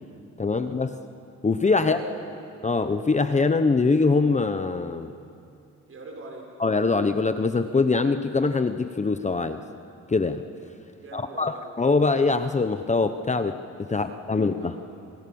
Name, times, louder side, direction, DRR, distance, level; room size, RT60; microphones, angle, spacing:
voice 1, 0.4-1.0 1.4-2.0 2.6-5.1 6.6-9.6 10.1-10.4 11.1-13.6 13.9-14.8, left 4 dB, 25° left, 9 dB, 1.1 m, -23 dB
voice 2, 1.8-2.3 5.9-6.5 10.9-11.6 13.9-14.0 14.3-14.8, right 3 dB, 45° right, 1 dB, 6.7 m, -43 dB
29.5 x 27.0 x 7.2 m, 2.5 s
cardioid pair, 90°, 30 cm